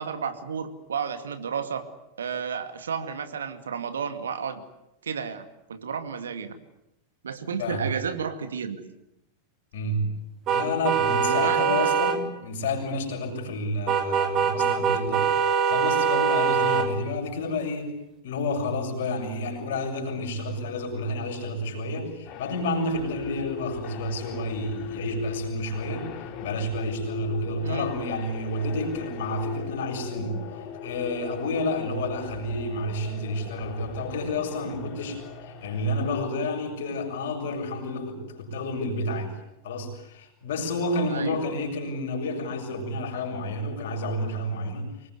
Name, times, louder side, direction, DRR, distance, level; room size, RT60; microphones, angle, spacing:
voice 1, 0.0-1.9 2.2-4.6 5.0-6.6 7.2-8.8 11.3-11.9 27.6-27.9 41.1-41.4, right 6 dB, 65° right, 9 dB, 2.3 m, -32 dB
voice 2, 9.7-10.1 10.5-17.9 18.2-26.1 26.4-39.3 39.6-44.9, left 1 dB, 55° left, 2 dB, 6.8 m, -30 dB
sound 1, 10.5-12.2 13.9-16.9, right 6 dB, 35° right, 2.7 m, -23 dB
sound 2, 22.2-36.2, left 6 dB, 40° left, 3.0 m, -38 dB
25.0 x 21.5 x 9.6 m, 0.85 s
figure-of-eight pair, 90°, 0 cm